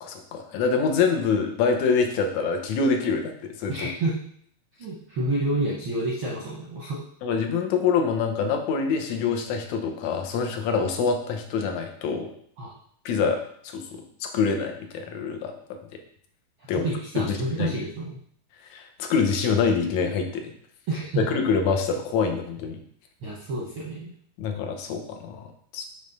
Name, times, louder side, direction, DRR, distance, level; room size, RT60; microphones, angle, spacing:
voice 1, 0.0-3.3 3.6-3.9 7.2-12.3 13.1-15.5 16.7-16.9 17.2-17.7 18.7-20.5 21.2-22.8 24.4-25.9, left 5 dB, 70° left, 4 dB, 2.0 m, -25 dB
voice 2, 3.7-4.3 4.8-7.1 12.6-12.7 16.8-18.2 20.9-21.4 23.2-24.1, right 2 dB, 70° right, -4 dB, 1.2 m, -29 dB
6.8 x 3.2 x 5.3 m, 0.63 s
omnidirectional pair, 3.6 m